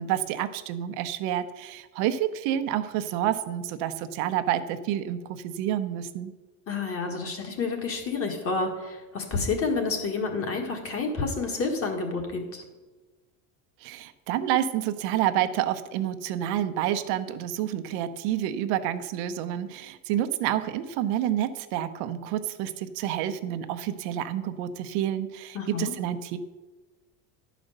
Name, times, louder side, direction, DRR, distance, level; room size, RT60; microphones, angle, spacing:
voice 1, 0.0-6.3 13.8-26.4, right 11 dB, 85° right, 10 dB, 0.8 m, -29 dB
voice 2, 6.7-12.6 25.5-25.9, left 4 dB, 35° left, 3 dB, 1.8 m, -29 dB
11.0 x 5.1 x 6.5 m, 1.2 s
cardioid pair, 145°, 39 cm